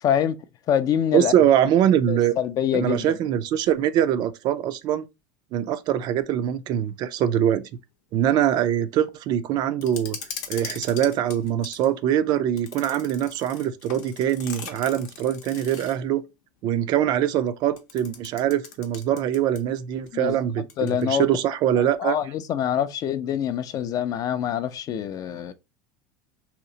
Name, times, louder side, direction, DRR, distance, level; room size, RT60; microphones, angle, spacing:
voice 1, 0.0-0.4 0.7-1.3 2.1-3.2 20.1-20.4 20.8-21.3 21.8-25.5, left 9 dB, 40° left, 0.3 m, -25 dB
voice 2, 1.1-2.3 2.7-5.0 5.5-7.7 8.1-10.2 10.5-16.2 16.6-22.2, right 10 dB, 50° right, 0.3 m, -23 dB
sound 1, 9.8-11.9 12.6-16.1 17.8-19.8 20.1-20.2 20.7-21.1, left 7 dB, 75° left, 0.6 m, -40 dB
2.8 x 2.0 x 2.6 m
supercardioid pair, 110°, 10 cm